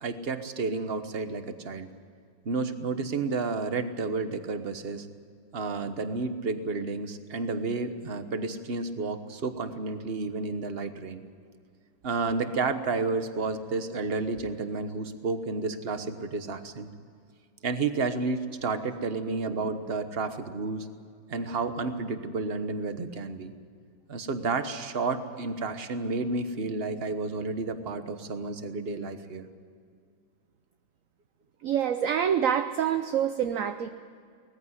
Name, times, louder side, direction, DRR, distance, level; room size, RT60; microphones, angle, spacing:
voice 1, 0.0-1.9 2.4-5.1 5.5-11.2 12.0-16.9 17.6-20.9 21.3-23.5 24.1-29.5, right 3 dB, 35° right, 9 dB, 1.2 m, -31 dB
voice 2, 31.6-33.9, right 8 dB, 60° right, 8 dB, 0.9 m, -26 dB
20.0 x 15.0 x 9.7 m, 2.2 s
omnidirectional pair, 2.0 m